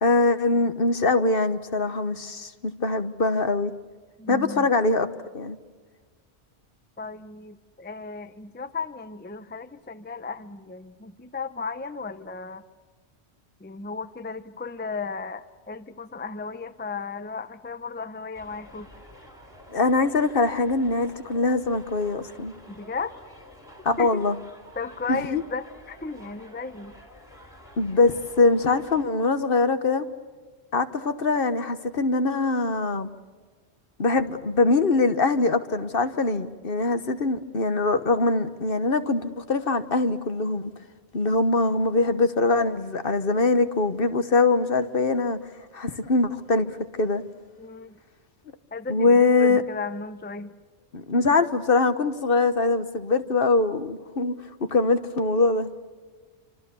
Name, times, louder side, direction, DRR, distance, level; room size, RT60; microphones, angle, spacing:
voice 1, 0.0-3.7 4.3-5.1 5.3-5.6 19.7-22.5 23.8-24.4 25.1-25.4 27.8-30.0 30.7-33.1 34.0-40.7 41.1-45.4 45.7-47.2 48.9-49.6 50.9-54.3 54.7-55.7, left 3 dB, 55° left, 1.4 m, -23 dB
voice 2, 4.2-4.7 7.0-12.6 13.6-18.9 22.7-23.2 24.0-24.3 24.8-27.0 47.6-48.0 48.7-50.5, left 4 dB, 10° left, 0.7 m, -35 dB
sound 1, 18.3-29.0, equal, 30° left, 4.4 m, -49 dB
27.0 x 26.0 x 7.0 m
omnidirectional pair, 1.1 m